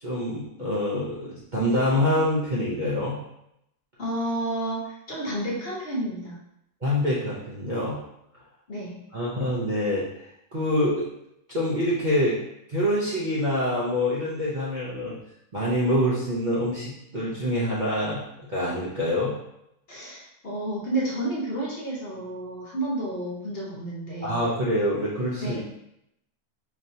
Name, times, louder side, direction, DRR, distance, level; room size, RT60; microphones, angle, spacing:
voice 1, 0.0-3.2 6.8-8.0 9.1-10.1 10.5-11.1 11.5-12.4 12.7-15.2 15.5-19.3 24.2-25.6, left 1 dB, 45° right, -7 dB, 0.7 m, -25 dB
voice 2, 4.0-6.4 8.7-9.0 19.9-24.5 25.4-25.6, right 1 dB, 45° left, -4 dB, 1.0 m, -31 dB
5.0 x 2.9 x 2.7 m, 0.80 s
omnidirectional pair, 1.6 m